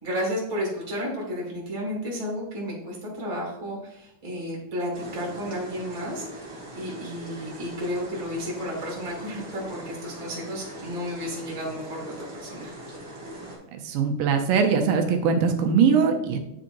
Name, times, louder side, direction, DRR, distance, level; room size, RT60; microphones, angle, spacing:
voice 1, 0.0-6.3 6.7-12.7, equal, 15° right, -4 dB, 1.4 m, -32 dB
sound 1, 4.9-13.6, right 1 dB, 35° right, 2.0 m, -41 dB
voice 2, 13.8-16.4, right 6 dB, 85° right, 4 dB, 2.4 m, -21 dB
10.0 x 3.8 x 2.6 m, 0.83 s
omnidirectional pair, 3.8 m